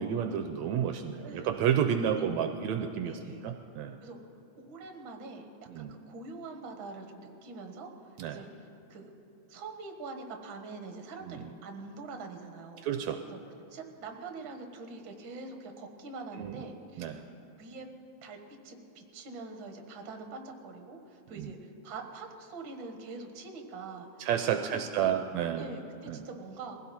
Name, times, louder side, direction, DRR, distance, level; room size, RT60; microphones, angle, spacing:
voice 1, 0.0-4.0 5.7-6.0 8.2-8.4 11.3-11.5 12.8-13.2 16.4-16.6 17.0-17.2 21.3-21.5 24.2-25.7 26.1-26.2, right 8 dB, 80° right, 6 dB, 1.8 m, -31 dB
voice 2, 3.0-3.4 4.0-4.2 4.6-5.5 5.7-8.5 8.9-9.1 9.5-12.9 13.3-13.4 13.7-17.2 17.6-17.9 18.2-18.4 18.6-24.3 24.7-25.2 25.6-26.8, right 3 dB, 50° right, 4 dB, 1.8 m, -44 dB
21.5 x 16.0 x 4.2 m, 2.9 s
omnidirectional pair, 3.4 m